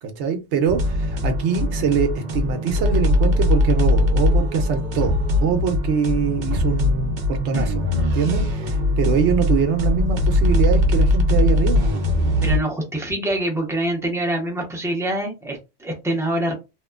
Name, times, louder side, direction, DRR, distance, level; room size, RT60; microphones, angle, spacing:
voice 1, 0.0-5.2 5.4-11.8, right 6 dB, 75° right, 0.9 m, -23 dB
sound 1, 0.7-12.6, left 1 dB, 50° right, 0.6 m, -20 dB
voice 2, 12.4-16.5, right 1 dB, 5° right, 0.6 m, -25 dB
2.9 x 2.1 x 2.3 m
omnidirectional pair, 1.2 m